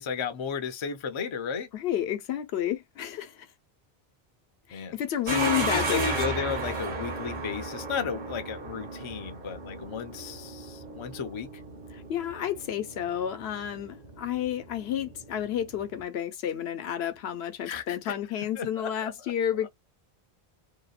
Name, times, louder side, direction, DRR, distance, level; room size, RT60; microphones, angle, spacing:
voice 1, 0.0-1.7 4.7-4.9 5.3-11.5 17.6-18.2 18.6-19.1, left 6 dB, 45° left, 0.4 m, -34 dB
voice 2, 1.7-3.5 4.7-6.1 11.9-19.7, left 10 dB, 85° left, 0.9 m, -31 dB
sound 1, 5.3-16.0, right 3 dB, 55° right, 0.8 m, -35 dB
2.7 x 2.1 x 2.3 m
omnidirectional pair, 1.1 m